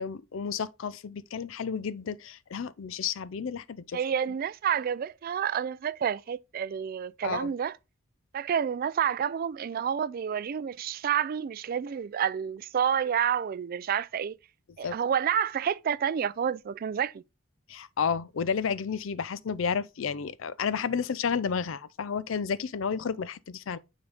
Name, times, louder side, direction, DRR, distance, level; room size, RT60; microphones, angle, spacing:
voice 1, 0.0-4.0 7.2-7.5 14.8-15.0 17.7-23.8, left 6 dB, 75° left, 0.5 m, -31 dB
voice 2, 3.9-7.8 8.3-14.4 14.8-17.2, right 8 dB, 45° right, 0.3 m, -29 dB
9.5 x 4.0 x 3.4 m
head